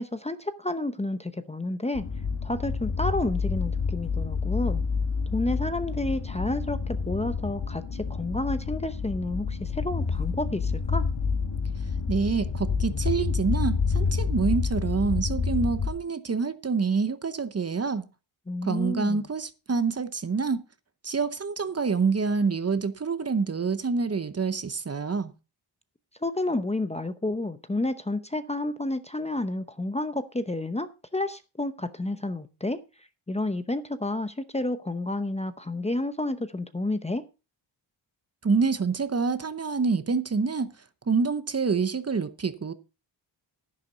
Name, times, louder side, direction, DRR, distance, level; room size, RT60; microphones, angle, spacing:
voice 1, 0.0-2.0 2.4-4.8 5.3-11.1 18.5-19.2 26.2-37.2, left 2 dB, 15° left, 0.7 m, -30 dB
sound 1, 1.9-15.9, left 5 dB, 65° left, 2.4 m, -28 dB
voice 2, 12.1-18.0 18.6-20.6 21.0-25.3 38.4-42.7, right 5 dB, 30° right, 0.9 m, -27 dB
10.5 x 10.5 x 3.9 m
wide cardioid pair, 105°, 47 cm